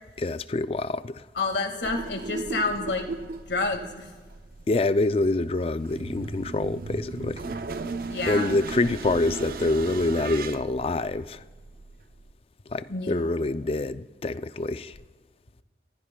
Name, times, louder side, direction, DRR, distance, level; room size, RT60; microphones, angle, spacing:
voice 1, 0.2-1.2 4.7-7.4 8.3-11.4 12.7-15.0, left 2 dB, 35° left, 0.3 m, -26 dB
voice 2, 1.4-3.0 3.5-4.1 8.1-8.5 12.9-13.3, left 3 dB, 80° left, 1.9 m, -28 dB
sound 1, 1.8-12.3, right 3 dB, 55° right, 0.5 m, -37 dB
29.0 x 15.5 x 2.3 m
head